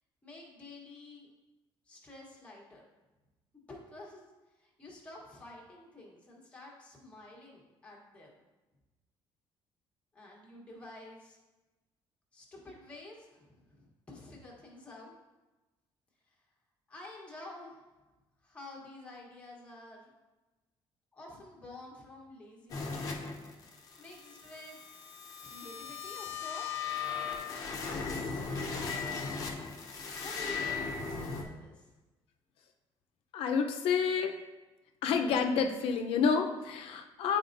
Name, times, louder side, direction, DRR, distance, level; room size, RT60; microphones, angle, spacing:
voice 1, 0.2-1.3 1.9-2.8 3.7-4.2 4.5-8.4 10.1-11.4 12.3-15.1 16.3-16.4 16.9-17.8 18.4-20.1 21.1-23.1 24.0-24.8 25.4-26.9 27.8-29.2 30.2-31.9, left 2 dB, 10° left, -3 dB, 1.2 m, -50 dB
sound 1, 22.7-31.4, left 5 dB, 35° left, 0.8 m, -37 dB
voice 2, 33.3-34.4 35.0-37.4, left 6 dB, 70° left, 5 dB, 0.6 m, -29 dB
9.1 x 4.3 x 2.6 m, 1.1 s
cardioid pair, 170°, 10 cm